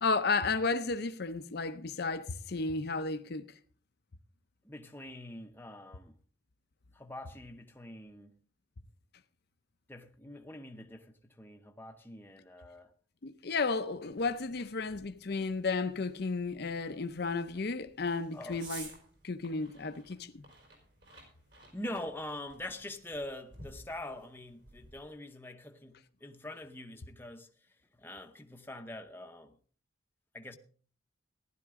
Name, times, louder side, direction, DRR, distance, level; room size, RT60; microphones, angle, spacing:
voice 1, 0.0-3.5 13.2-18.9 19.2-20.5, left 4 dB, 55° left, 0.6 m, -33 dB
voice 2, 4.6-6.2 6.9-8.3 9.9-12.9 18.3-18.6 21.7-29.6 30.3-30.6, left 1 dB, 10° left, 0.7 m, -44 dB
sound 1, 14.1-25.1, right 3 dB, 60° right, 4.6 m, -54 dB
15.5 x 11.5 x 3.6 m
head